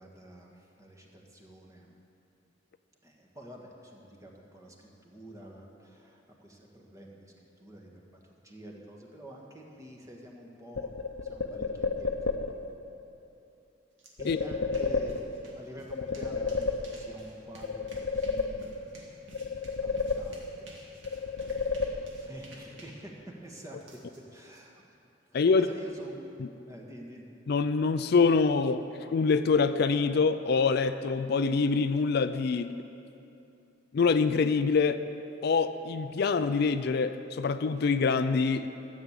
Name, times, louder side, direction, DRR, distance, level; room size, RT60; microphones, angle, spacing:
voice 1, 0.0-1.9 3.0-7.3 7.6-12.2 14.2-18.7 19.2-19.5 19.8-20.8 22.2-24.0 24.3-24.9 25.5-26.1 26.7-27.2, right 1 dB, 15° right, -1 dB, 1.6 m, -48 dB
sound 1, 10.8-12.7 14.2-15.6 15.9-17.3 17.6-19.0 19.3-20.7 21.0-22.4, left 4 dB, 90° left, 0.7 m, -32 dB
sound 2, 14.0-14.1 14.4-24.6, right 1 dB, 85° right, 2.2 m, -52 dB
voice 2, 25.3-25.7 26.4-26.5 27.5-28.8 29.1-32.7 33.9-35.0 35.4-38.7, left 4 dB, 60° left, 11 dB, 0.4 m, -25 dB
14.0 x 7.3 x 8.2 m, 2.8 s
head